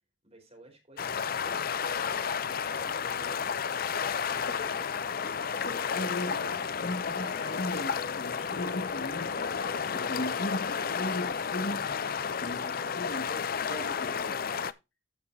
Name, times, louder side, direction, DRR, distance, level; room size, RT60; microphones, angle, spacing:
voice 1, 0.2-1.7 2.0-5.2, right 1 dB, 30° right, 4.3 m, -55 dB
sound 1, 1.0-14.7, left 6 dB, 45° left, 0.5 m, -32 dB
voice 2, 5.5-11.9 12.4-14.6, left 1 dB, 70° left, 2.0 m, -38 dB
15.5 x 5.8 x 2.7 m
head